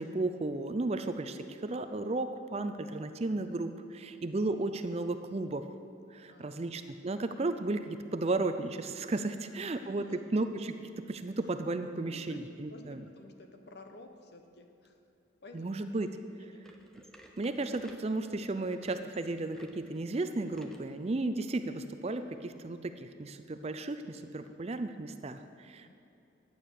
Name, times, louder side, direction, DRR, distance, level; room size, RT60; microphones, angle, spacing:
voice 1, 0.0-5.6 6.1-13.0 15.5-16.1 17.4-25.9, right 2 dB, 30° right, 9 dB, 0.4 m, -34 dB
voice 2, 3.9-4.2 6.3-6.8 9.3-10.4 12.1-15.0 15.4-15.8 16.4-16.7 25.7-25.9, left 2 dB, 55° left, 5 dB, 1.0 m, -53 dB
sound 1, 16.6-20.9 21.4-21.5 22.2-22.3 23.2-23.3, equal, 5° left, 0.7 m, -57 dB
12.0 x 8.7 x 6.6 m, 2.6 s
head